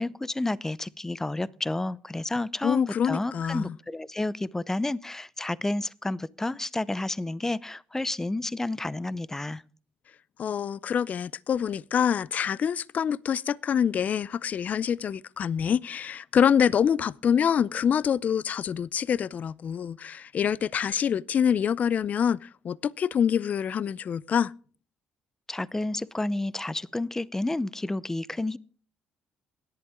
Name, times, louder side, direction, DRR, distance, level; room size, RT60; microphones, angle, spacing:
voice 1, 0.0-9.6 25.5-28.6, left 2 dB, 10° left, 0.7 m, -30 dB
voice 2, 2.6-3.7 10.4-24.5, left 8 dB, 50° left, 0.5 m, -26 dB
17.0 x 11.0 x 3.5 m
supercardioid pair, 80°, 3 cm